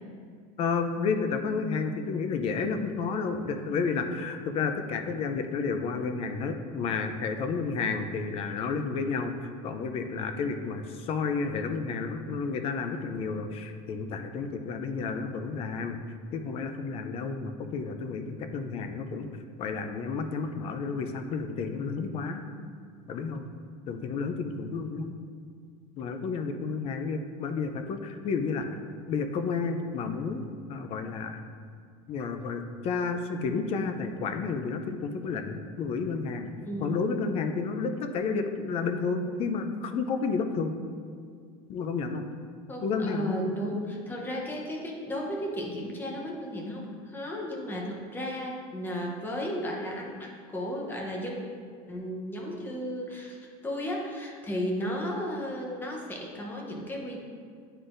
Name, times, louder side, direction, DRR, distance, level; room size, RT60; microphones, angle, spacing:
voice 1, 0.6-16.0 16.3-19.3 19.6-22.4 23.1-23.4 23.9-25.1 26.0-28.6 29.1-30.4 30.7-31.4 32.1-36.5 36.8-40.7 41.7-42.2 42.8-43.5, left 5 dB, 30° left, 7 dB, 0.4 m, -31 dB
voice 2, 36.7-37.0 42.7-51.4 51.9-57.2, equal, 10° left, -1 dB, 0.8 m, -34 dB
9.8 x 3.9 x 2.5 m, 2.1 s
cardioid pair, 160°, 19 cm